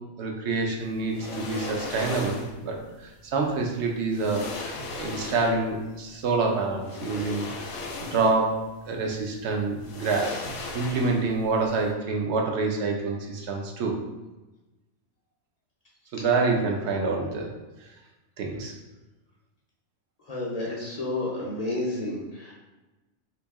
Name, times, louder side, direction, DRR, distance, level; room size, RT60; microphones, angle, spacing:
voice 1, 0.2-2.8 3.3-7.7 8.0-10.4 10.7-14.0 16.1-17.5 18.4-18.7, right 3 dB, 65° right, 1 dB, 0.8 m, -27 dB
sound 1, 1.1-2.6 3.7-3.8 4.1-5.7 6.8-8.5 8.9-9.0 9.8-11.4 11.7-11.8, left 3 dB, 75° left, 0.9 m, -37 dB
voice 2, 20.3-22.5, left 2 dB, 50° left, -4 dB, 0.5 m, -30 dB
2.9 x 2.6 x 3.5 m, 1.1 s
omnidirectional pair, 1.3 m